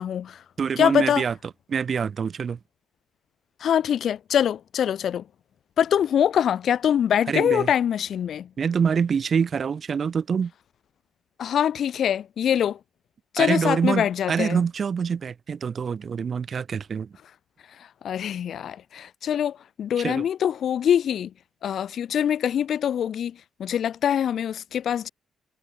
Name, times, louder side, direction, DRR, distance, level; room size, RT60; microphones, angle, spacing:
voice 1, 0.0-0.4 0.8-1.2 3.6-5.2 5.8-8.5 11.4-12.8 13.3-14.6 18.0-21.3 21.6-25.1, left 9 dB, 65° left, 6.7 m, -24 dB
voice 2, 0.6-1.3 1.7-2.6 7.3-7.7 8.6-10.5 13.4-17.1 20.0-20.2, right 6 dB, 45° right, 3.9 m, -25 dB
cardioid pair, 90°, 0 cm